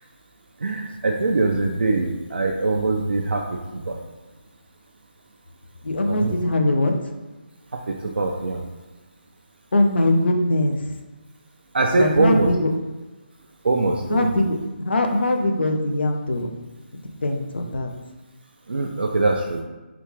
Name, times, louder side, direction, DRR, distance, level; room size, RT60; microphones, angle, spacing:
voice 1, 0.6-4.0 6.1-6.4 7.7-8.6 11.7-12.5 13.6-14.3 18.7-19.6, right 3 dB, 70° right, 1 dB, 0.4 m, -22 dB
voice 2, 5.8-6.9 9.7-10.8 11.9-12.7 14.1-16.5 17.2-17.9, left 1 dB, 70° left, 3 dB, 0.5 m, -21 dB
3.3 x 2.3 x 3.1 m, 1.2 s
figure-of-eight pair, 150°, 6 cm